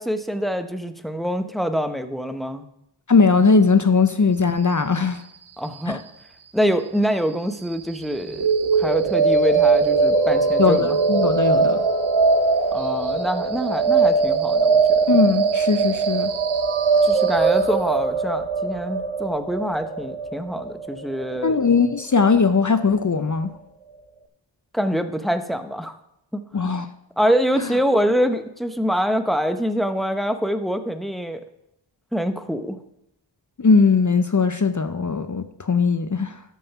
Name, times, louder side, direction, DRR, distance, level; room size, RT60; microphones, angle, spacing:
voice 1, 0.0-2.7 5.6-6.0 6.5-10.9 12.7-15.0 17.0-21.6 24.7-26.0 26.3-26.5 27.2-31.4 32.1-32.8, equal, ahead, 0.9 m, -25 dB
voice 2, 3.1-5.2 5.9-6.0 10.6-11.8 15.1-16.3 21.4-23.5 26.5-26.9 33.6-36.4, left 4 dB, 40° left, 0.7 m, -19 dB
sound 1, 8.4-22.3, right 4 dB, 85° right, 0.8 m, -20 dB
13.0 x 5.5 x 5.9 m
wide cardioid pair, 45°, 46 cm